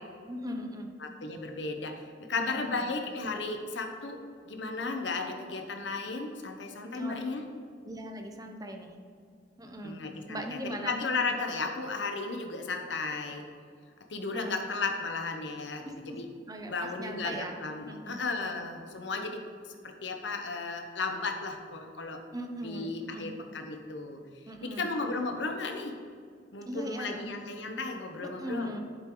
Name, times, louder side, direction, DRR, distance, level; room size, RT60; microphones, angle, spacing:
voice 1, 0.3-0.9 2.4-2.8 6.9-7.2 7.8-8.9 9.6-11.0 14.3-14.5 15.8-16.2 16.5-17.5 17.9-18.2 22.3-23.3 24.5-24.9 26.7-27.3 28.2-28.8, equal, 20° right, 3 dB, 0.8 m, -39 dB
voice 2, 1.0-4.2 4.4-7.4 9.8-13.4 14.1-16.3 16.7-19.4 19.7-22.2 22.6-24.2 24.6-25.9 26.5-28.7, left 3 dB, 75° left, 4 dB, 1.1 m, -34 dB
11.0 x 8.1 x 3.9 m, 2.2 s
head